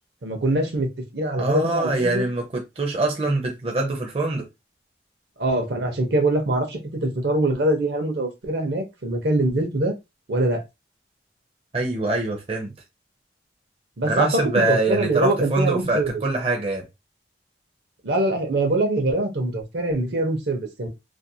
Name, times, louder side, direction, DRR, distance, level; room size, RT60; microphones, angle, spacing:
voice 1, 0.2-2.3 5.4-9.9 10.3-10.6 14.0-16.1 18.0-20.9, right 2 dB, 70° right, 0.7 m, -23 dB
voice 2, 1.4-4.5 11.7-12.7 14.1-16.8, right 2 dB, 35° right, 0.5 m, -24 dB
2.5 x 2.1 x 2.6 m
head